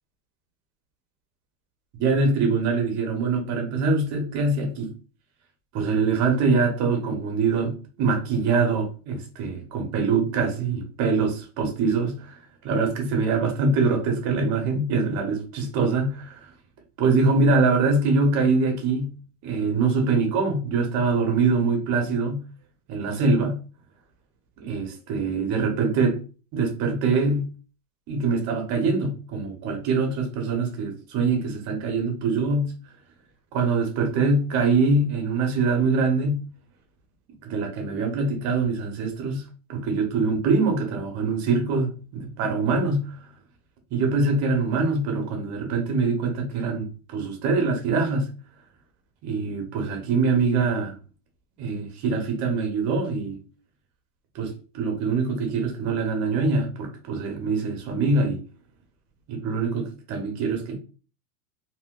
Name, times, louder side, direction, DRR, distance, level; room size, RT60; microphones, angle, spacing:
voice 1, 2.0-4.9 5.7-12.4 12.6-16.5 17.0-19.1 19.4-22.4 22.9-23.6 24.6-26.2 26.5-27.5 28.1-32.7 33.5-36.4 37.4-43.1 43.9-48.3 49.2-51.0 51.6-53.4 54.3-58.4 59.3-60.7, right 4 dB, 35° right, 0.9 m, -24 dB
2.8 x 2.1 x 3.6 m
supercardioid pair, 145°, 47 cm